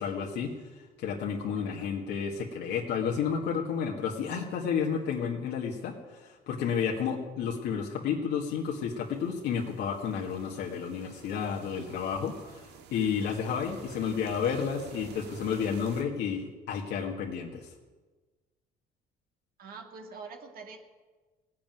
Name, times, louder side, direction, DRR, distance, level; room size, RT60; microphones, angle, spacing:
voice 1, 0.0-17.7, left 7 dB, 80° left, 0 dB, 1.8 m, -31 dB
voice 2, 1.6-1.9 19.6-20.8, right 4 dB, 60° right, 3 dB, 1.9 m, -45 dB
sound 1, 8.6-16.0, right 6 dB, 85° right, 1.8 m, -50 dB
17.0 x 8.5 x 9.2 m, 1.3 s
cardioid pair, 110°, 17 cm